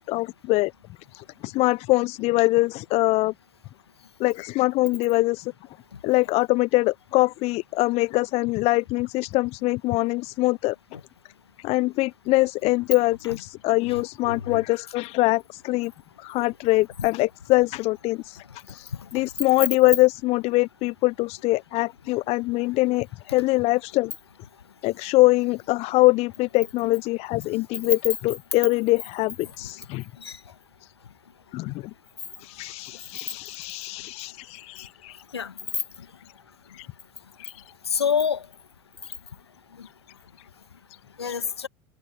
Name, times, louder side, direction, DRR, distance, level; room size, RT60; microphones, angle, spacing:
voice 1, 0.1-0.7 1.1-3.3 4.2-5.5 6.0-10.8 11.6-15.9 16.2-18.4 18.7-24.1 24.8-30.1 31.5-31.9 32.4-35.2 36.7-36.9 37.4-37.5, left 21 dB, 50° left, 0.7 m, -23 dB
voice 2, 13.9-14.6 30.2-30.4 35.3-35.5 37.9-38.4 41.2-41.7, left 7 dB, 85° left, 1.6 m, -27 dB
figure-of-eight pair, 70°, 13 cm